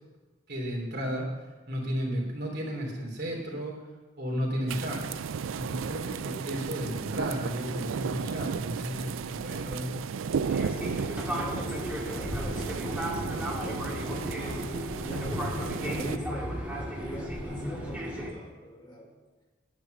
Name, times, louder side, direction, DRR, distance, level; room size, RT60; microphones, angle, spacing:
voice 1, 0.5-1.3 1.7-3.7 4.2-5.0 5.5-9.9, equal, 50° right, -1 dB, 3.2 m, -33 dB
sound 1, 4.7-16.2, right 6 dB, 75° right, 0.4 m, -34 dB
Fixed-wing aircraft airplane, 10.4-18.3, equal, 10° right, 2.1 m, -34 dB
voice 2, 11.3-14.6 15.0-19.1, left 1 dB, 25° left, -2 dB, 2.0 m, -41 dB
11.0 x 9.3 x 6.6 m, 1.2 s
head